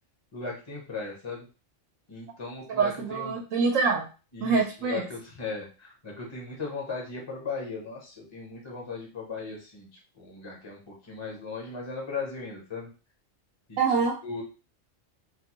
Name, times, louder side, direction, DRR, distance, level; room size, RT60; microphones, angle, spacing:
voice 1, 0.3-1.4 2.1-3.4 4.3-12.9 13.7-13.8 14.2-14.4, left 4 dB, 30° left, -1 dB, 0.7 m, -37 dB
voice 2, 2.8-4.1 4.4-5.0 13.8-14.2, right 4 dB, 80° right, 1 dB, 1.0 m, -25 dB
4.0 x 2.2 x 2.9 m, 0.32 s
omnidirectional pair, 1.3 m